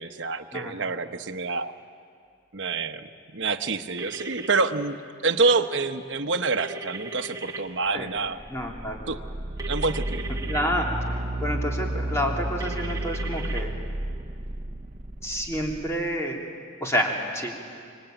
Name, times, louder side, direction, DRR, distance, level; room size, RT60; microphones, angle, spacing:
voice 1, 0.0-1.7 2.5-5.0 5.2-8.4 9.1-9.2 9.7-10.3, right 3 dB, 60° right, 6 dB, 1.1 m, -27 dB
sound 1, 4.0-4.6 6.6-7.6 9.6-10.6 12.6-13.6, right 3 dB, 15° right, 1.8 m, -37 dB
sound 2, 8.2-16.0, right 1 dB, 35° right, 1.0 m, -32 dB
voice 2, 8.5-9.0 10.5-10.9 11.4-13.7 15.2-16.4 16.8-17.5, equal, 15° left, -1 dB, 3.1 m, -28 dB
25.5 x 24.0 x 9.1 m, 2.3 s
head